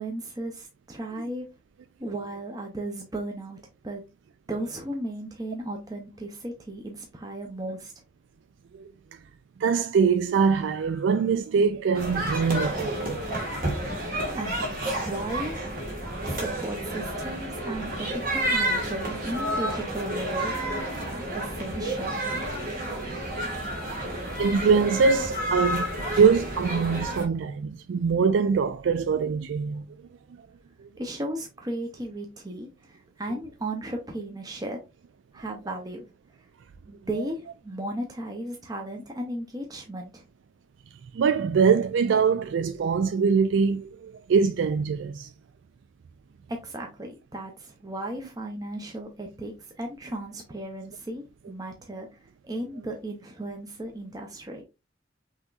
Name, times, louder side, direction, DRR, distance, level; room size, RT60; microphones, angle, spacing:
voice 1, 0.0-1.5 2.0-3.6 3.8-4.0 4.5-7.9 14.1-15.5 16.3-20.5 20.9-22.2 31.0-34.8 35.3-36.0 36.9-40.2 46.5-54.6, right 1 dB, 20° right, 0.6 m, -35 dB
voice 2, 9.6-13.2 13.7-14.1 16.1-16.3 17.7-17.8 24.4-25.8 26.1-29.8 30.8-30.9 41.1-45.3, right 5 dB, 85° right, 0.3 m, -23 dB
sound 1, 11.9-27.2, right 1 dB, 50° right, 1.6 m, -30 dB
5.6 x 3.0 x 2.4 m
head